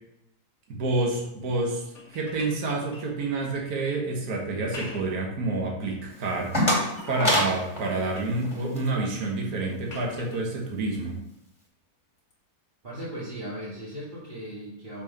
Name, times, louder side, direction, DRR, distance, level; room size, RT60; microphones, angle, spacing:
voice 1, 0.7-11.2, right 2 dB, 70° right, -1 dB, 1.6 m, -28 dB
sound 1, 1.9-3.6 4.5-5.3 5.8-6.4 6.9-7.4 7.7-8.4 9.9-10.4 12.2-12.3, left 2 dB, 50° left, 1.6 m, -45 dB
sound 2, 6.1-8.9, equal, 20° left, 2.0 m, -27 dB
voice 2, 12.8-15.0, right 1 dB, 35° right, -10 dB, 1.9 m, -37 dB
5.8 x 4.6 x 5.3 m, 0.84 s
omnidirectional pair, 1.6 m